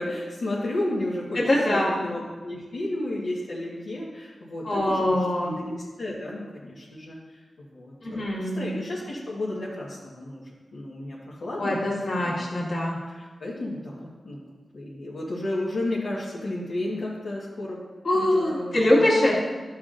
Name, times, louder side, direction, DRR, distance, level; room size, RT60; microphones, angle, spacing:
voice 1, 0.0-1.4 1.7-5.2 5.4-12.4 13.1-14.4 14.7-17.8 18.1-19.0, left 1 dB, 65° left, -7 dB, 1.3 m, -33 dB
voice 2, 1.4-2.0 4.6-5.5 8.0-8.7 11.6-13.0 18.0-19.4, left 1 dB, 50° left, -5 dB, 1.9 m, -23 dB
12.5 x 6.0 x 2.5 m, 1.4 s
wide cardioid pair, 160°, 0 cm